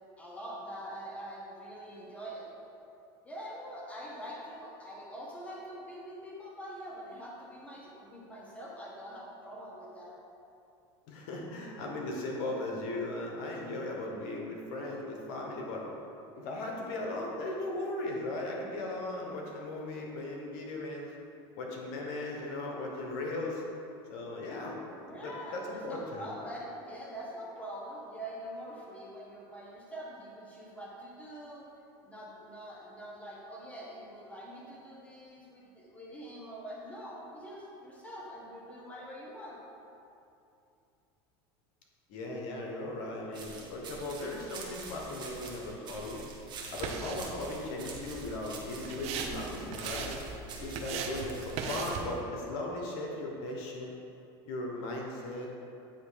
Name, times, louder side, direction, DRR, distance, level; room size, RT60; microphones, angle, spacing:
voice 1, 0.2-2.5 3.2-10.1 25.0-31.7 32.0-39.6, equal, 10° left, -5 dB, 1.3 m, -44 dB
voice 2, 11.1-15.9 16.3-21.1 21.5-23.6 24.1-24.8 25.2-26.3 42.1-46.2 46.7-50.2 50.6-54.0 54.4-55.6, left 2 dB, 65° left, -1 dB, 1.1 m, -37 dB
sound 1, 43.3-52.0, right 4 dB, 35° right, 1.1 m, -46 dB
sound 2, 46.1-52.2, right 5 dB, 55° right, 0.7 m, -40 dB
8.9 x 3.0 x 5.0 m, 2.7 s
supercardioid pair, 120°, 13 cm